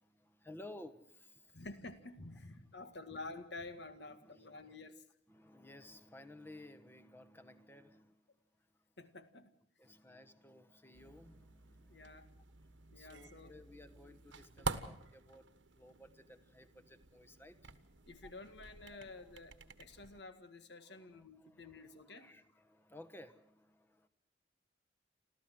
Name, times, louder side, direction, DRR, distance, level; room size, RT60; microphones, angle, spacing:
voice 1, 0.0-1.6 4.0-4.9 5.3-8.1 9.8-12.2 13.0-15.5 15.8-17.7 18.2-18.3 18.9-19.3 20.8-24.1, left 1 dB, 10° left, 10 dB, 1.2 m, -57 dB
voice 2, 1.5-5.0 9.0-9.5 11.9-12.3 12.9-13.5 18.1-22.3, left 2 dB, 65° left, 10 dB, 2.0 m, -50 dB
sound 1, 10.9-20.2, right 4 dB, 80° right, 1.4 m, -48 dB
29.0 x 13.5 x 7.7 m, 0.69 s
head